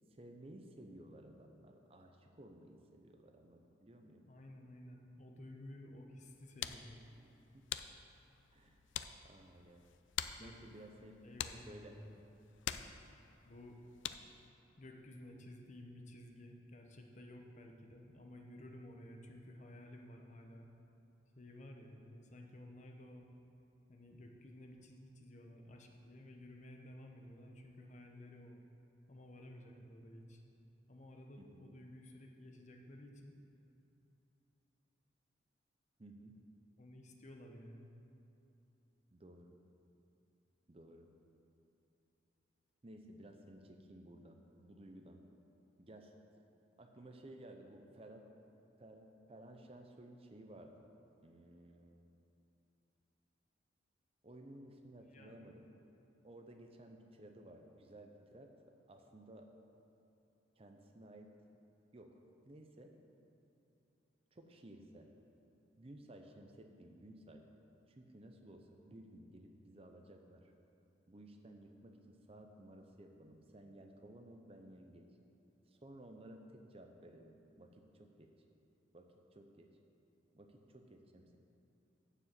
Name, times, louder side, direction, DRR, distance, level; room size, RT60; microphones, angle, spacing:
voice 1, 0.1-4.2 7.1-7.7 8.5-8.8 9.2-9.8 10.4-11.2 11.7-12.0 31.4-31.7 36.0-36.4 39.1-39.5 40.7-41.1 42.8-45.2 45.8-46.1 46.8-48.2 48.8-50.7 51.2-52.1 54.2-55.7 56.2-58.5 58.9-59.5 60.6-61.3 61.9-62.2 62.4-62.9 64.3-65.1 65.8-67.4 67.9-70.5 71.1-75.1 75.7-78.3 78.9-79.7 80.3-81.4, right 1 dB, 30° right, 4 dB, 0.6 m, -56 dB
voice 2, 4.3-7.1 10.4-10.5 11.2-12.1 13.5-13.8 14.8-20.7 21.4-23.3 23.9-28.6 29.1-30.4 30.9-33.4 36.8-37.9 55.1-55.5, left 1 dB, 40° left, 2 dB, 0.9 m, -54 dB
sound 1, 6.2-14.5, left 10 dB, 90° left, 0.4 m, -47 dB
7.1 x 6.8 x 7.6 m, 2.9 s
head